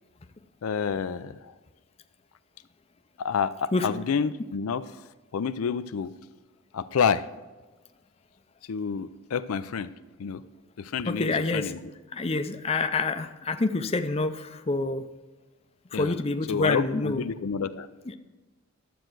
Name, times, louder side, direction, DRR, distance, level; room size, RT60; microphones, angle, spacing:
voice 1, 0.6-1.4 3.2-4.8 5.3-6.1 6.7-7.2 8.7-9.9 10.2-10.4 10.8-11.8 15.9-16.1 16.5-17.9, left 6 dB, 80° left, 12 dB, 0.4 m, -28 dB
voice 2, 11.1-11.7 12.1-15.0 15.9-17.2 18.1-18.2, left 3 dB, 25° left, 8 dB, 0.5 m, -27 dB
12.0 x 7.8 x 4.6 m, 1.2 s
head